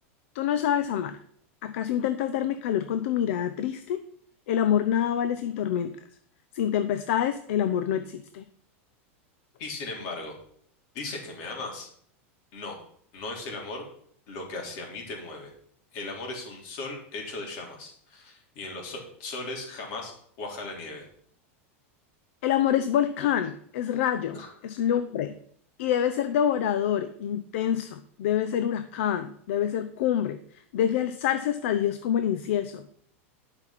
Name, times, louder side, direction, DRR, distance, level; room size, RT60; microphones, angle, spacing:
voice 1, 0.3-1.2 1.6-4.0 4.5-6.0 6.5-8.4 22.4-25.3 25.8-32.9, left 10 dB, 65° left, 10 dB, 0.7 m, -26 dB
voice 2, 9.6-10.4 10.9-11.9 12.5-12.8 13.1-13.8 14.3-15.5 15.9-20.1 20.4-21.1 24.3-24.5, left 3 dB, 50° left, 1 dB, 3.7 m, -37 dB
11.0 x 5.9 x 5.9 m, 0.63 s
supercardioid pair, 155°, 7 cm